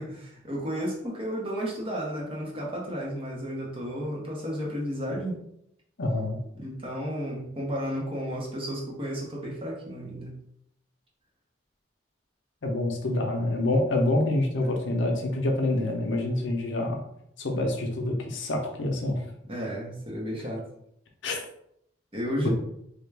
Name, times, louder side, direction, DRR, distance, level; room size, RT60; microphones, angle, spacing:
voice 1, 0.0-5.4 6.5-10.3 19.4-20.6 22.1-22.5, equal, 30° right, -3 dB, 0.8 m, -33 dB
voice 2, 6.0-6.4 12.6-17.0 17.4-19.2 21.2-21.4 22.4-22.5, left 2 dB, 70° left, 2 dB, 0.6 m, -26 dB
3.4 x 2.2 x 3.3 m, 0.74 s
head